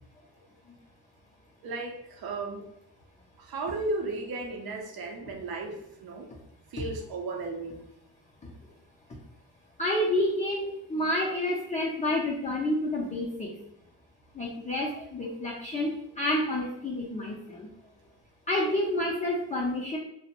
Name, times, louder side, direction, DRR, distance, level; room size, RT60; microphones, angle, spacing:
voice 1, 1.6-2.7 3.4-6.3 6.7-7.8, right 2 dB, 55° right, 3 dB, 0.6 m, -35 dB
voice 2, 9.8-13.7 14.3-17.7 18.5-20.0, left 1 dB, 20° left, -3 dB, 0.4 m, -29 dB
2.5 x 2.0 x 2.9 m, 0.79 s
cardioid pair, 100°, 44 cm